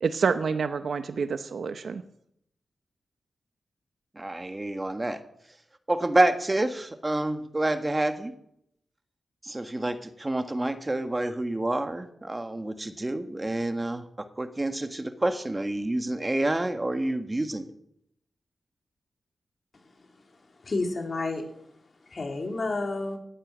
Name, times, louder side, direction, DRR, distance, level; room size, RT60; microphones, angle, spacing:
voice 1, 0.0-2.0, right 5 dB, 70° right, 10 dB, 0.8 m, -27 dB
voice 2, 4.1-5.2 5.9-8.3 9.4-17.7, right 1 dB, 20° right, 8 dB, 1.6 m, -28 dB
voice 3, 19.9-21.4 22.0-23.2, left 3 dB, 50° left, 3 dB, 3.5 m, -31 dB
14.5 x 9.0 x 8.8 m, 0.75 s
cardioid pair, 70°, 0 cm